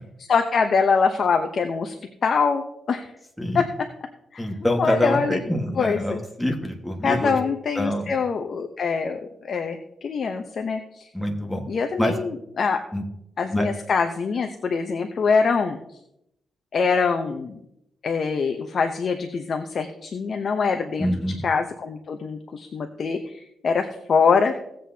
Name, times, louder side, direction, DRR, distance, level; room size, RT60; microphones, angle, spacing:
voice 1, 0.3-1.9 2.2-3.1 3.5-3.7 4.3-4.5 4.8-5.4 5.8-6.2 7.0-9.2 9.4-11.1 11.7-12.8 13.4-15.8 16.7-17.6 18.0-21.1 21.4-24.5, left 5 dB, 50° left, 5 dB, 0.7 m, -24 dB
voice 2, 4.4-7.3 7.7-8.1 11.1-11.6 12.0-12.1 12.9-13.0 13.5-13.7 21.0-21.4, left 1 dB, 5° left, 2 dB, 1.5 m, -25 dB
18.0 x 7.7 x 2.8 m, 0.80 s
cardioid pair, 125°, 0 cm